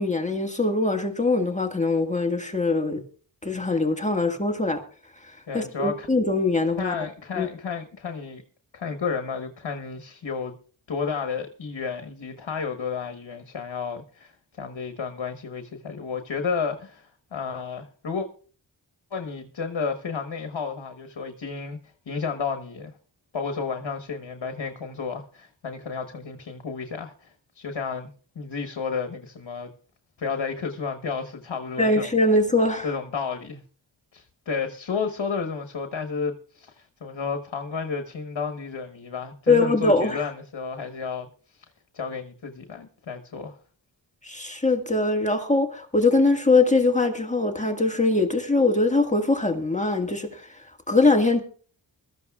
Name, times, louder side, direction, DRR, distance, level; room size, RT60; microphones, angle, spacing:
voice 1, 0.0-3.0 3.4-4.8 5.5-6.9 7.4-7.5 31.8-32.9 39.5-40.2 44.2-50.5 50.9-51.4, left 3 dB, 15° left, 1.7 m, -22 dB
voice 2, 5.5-6.1 6.8-8.4 8.7-10.5 10.9-18.3 19.1-21.8 22.1-22.9 23.3-28.1 28.3-29.7 30.2-32.1 32.8-33.6 34.1-41.3 41.5-41.6 41.9-43.6, left 5 dB, 65° left, 1.3 m, -32 dB
22.0 x 14.0 x 2.4 m
cardioid pair, 55°, 47 cm